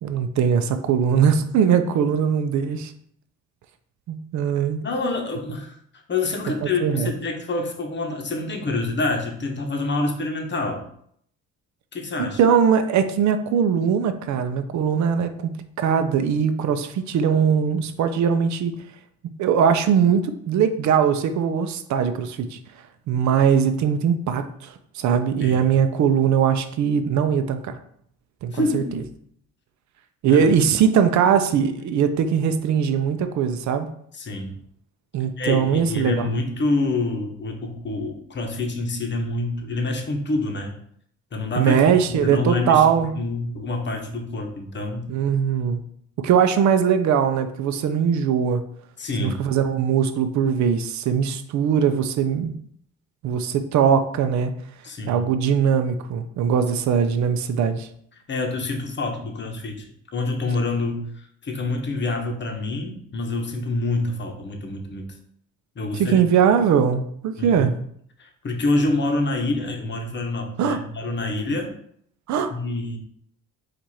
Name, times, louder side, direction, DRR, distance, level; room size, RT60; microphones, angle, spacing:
voice 1, 0.0-2.9 4.1-4.8 6.6-7.1 12.2-18.7 19.4-22.6 23.1-27.8 28.4-28.8 30.2-33.9 35.1-36.3 41.6-43.1 45.1-45.8 46.2-48.6 49.2-52.5 53.2-54.5 55.1-57.9 65.9-67.8 70.6-70.8 72.3-72.5, right 7 dB, 70° right, 9 dB, 0.5 m, -21 dB
voice 2, 4.8-5.8 6.1-10.8 11.9-12.4 25.4-25.6 28.5-29.0 30.3-30.5 34.1-34.5 35.4-40.7 41.3-42.9 43.1-45.1 49.0-49.4 54.8-55.2 58.3-59.9 60.1-65.1 65.8-66.2 67.4-67.7 68.2-71.7 72.5-73.0, left 2 dB, 40° left, 4 dB, 0.9 m, -27 dB
4.5 x 2.5 x 4.1 m, 0.66 s
cardioid pair, 90°, 30 cm